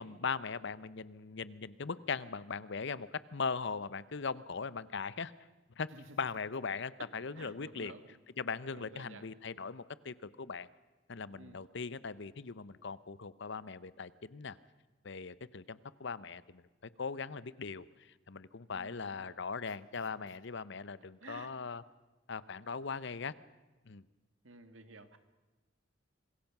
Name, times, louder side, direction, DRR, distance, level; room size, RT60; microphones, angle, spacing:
voice 1, 0.0-5.3 5.8-5.9 6.2-7.9 8.4-10.7 11.1-14.6 15.0-16.6 17.0-21.8 22.3-23.3 23.9-24.0, left 5 dB, 65° left, 17 dB, 0.8 m, -39 dB
voice 2, 7.4-8.2 8.7-9.3 11.3-11.6 18.7-19.4 21.2-21.5 24.4-25.2, right 3 dB, 90° right, 10 dB, 1.8 m, -53 dB
26.0 x 21.5 x 6.0 m, 1.2 s
head